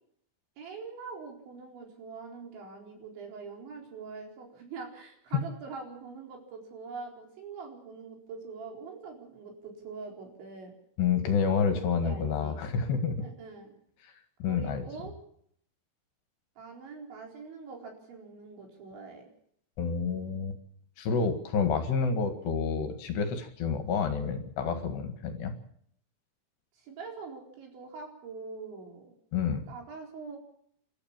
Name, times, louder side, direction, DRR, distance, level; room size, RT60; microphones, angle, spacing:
voice 1, 0.6-10.7 11.7-12.6 13.2-13.7 14.5-15.1 16.6-19.3 26.7-29.1 29.7-30.4, right 4 dB, 70° right, 1 dB, 6.5 m, -44 dB
voice 2, 11.0-13.2 14.4-14.8 19.8-20.6 21.0-25.5 29.3-29.6, left 5 dB, 65° left, 7 dB, 3.7 m, -29 dB
28.5 x 13.0 x 7.3 m, 0.68 s
omnidirectional pair, 5.4 m